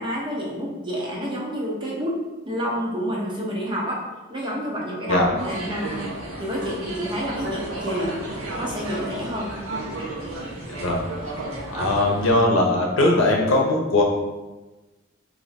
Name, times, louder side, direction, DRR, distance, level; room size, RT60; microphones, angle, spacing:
voice 1, 0.0-2.2 2.4-4.0 4.3-6.0 6.4-8.2 8.5-9.5 11.7-11.9, equal, 25° right, -4 dB, 0.8 m, -28 dB
sound 1, 5.4-12.4, right 1 dB, 90° right, 0.9 m, -33 dB
voice 2, 10.7-11.0 11.7-14.0, left 2 dB, 70° left, 0 dB, 0.7 m, -20 dB
3.4 x 2.7 x 4.1 m, 1.1 s
head